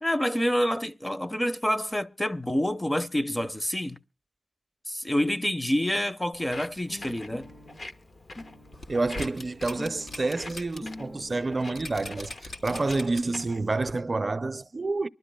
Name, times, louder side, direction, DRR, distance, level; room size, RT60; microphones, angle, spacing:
voice 1, 0.0-4.0 4.9-7.5, equal, 15° left, 0.7 m, -27 dB
Walk footsteps, 6.3-13.7, left 2 dB, 60° left, 1.2 m, -46 dB
sound 1, 6.9-11.5 12.3-12.4 12.6-12.7 13.0-13.1 13.3-13.9, left 1 dB, 40° left, 1.4 m, -46 dB
sound 2, 8.7-10.8 11.2-11.3 11.8-13.4 13.9-14.0, left 2 dB, 80° left, 2.8 m, -40 dB
voice 2, 8.9-15.1, right 3 dB, 40° right, 0.5 m, -28 dB
24.5 x 12.0 x 2.2 m
cardioid pair, 65°, 0 cm